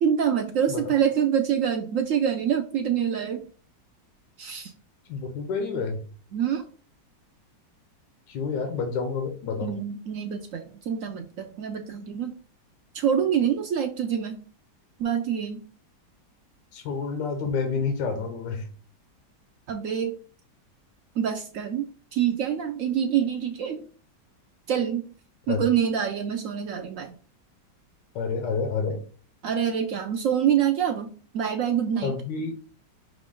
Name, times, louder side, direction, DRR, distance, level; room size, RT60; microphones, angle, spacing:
voice 1, 0.0-3.5 4.4-4.7 6.3-6.6 9.6-12.4 12.9-14.4 15.0-15.6 19.7-20.1 21.2-23.8 24.7-25.0 25.5-27.2 29.4-31.1 31.3-32.1, right 8 dB, 80° right, 5 dB, 0.7 m, -26 dB
voice 2, 5.1-6.1 8.3-9.8 16.7-18.7 25.5-25.6 28.1-29.0 32.0-32.5, left 5 dB, 80° left, 4 dB, 1.4 m, -29 dB
5.9 x 2.5 x 3.6 m, 0.40 s
omnidirectional pair, 1.9 m